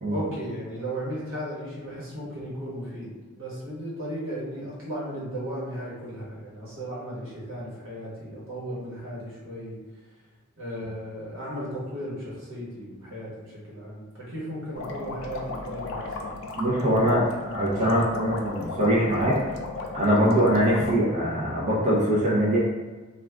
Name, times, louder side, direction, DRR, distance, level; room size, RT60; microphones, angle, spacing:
voice 1, 0.1-9.8 10.6-16.3 16.8-17.2 17.7-18.1, equal, 80° right, -7 dB, 1.2 m, -36 dB
sound 1, 14.8-21.0, left 3 dB, 75° left, 0.4 m, -36 dB
voice 2, 16.6-19.4 19.9-22.6, equal, 35° right, -7 dB, 0.7 m, -22 dB
2.4 x 2.4 x 3.3 m, 1.3 s
head